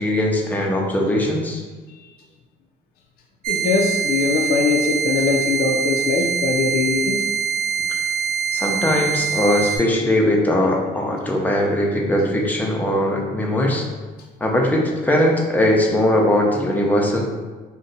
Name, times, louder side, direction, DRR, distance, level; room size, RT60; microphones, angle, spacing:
voice 1, 0.0-1.6 8.5-13.8 14.4-17.3, left 1 dB, 10° left, -1 dB, 0.5 m, -20 dB
sound 1, 3.4-9.8, right 7 dB, 65° right, 0.5 m, -24 dB
voice 2, 3.5-7.2, left 4 dB, 65° left, 1 dB, 0.4 m, -21 dB
2.6 x 2.1 x 3.8 m, 1.3 s
cardioid pair, 110°, 17 cm